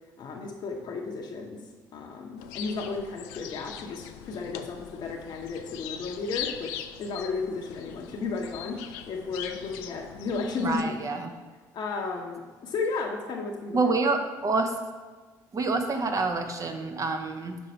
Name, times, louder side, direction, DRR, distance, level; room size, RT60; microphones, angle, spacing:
voice 1, 0.2-1.6 1.9-10.9 11.7-13.9, left 4 dB, 50° left, 0 dB, 0.8 m, -33 dB
sound 1, 2.4-10.8, left 10 dB, 75° left, 0.4 m, -41 dB
voice 2, 10.6-11.3 13.7-14.7 15.5-17.6, right 3 dB, 35° right, 5 dB, 0.8 m, -27 dB
5.3 x 4.6 x 4.4 m, 1.4 s
hypercardioid pair, 55°, 9 cm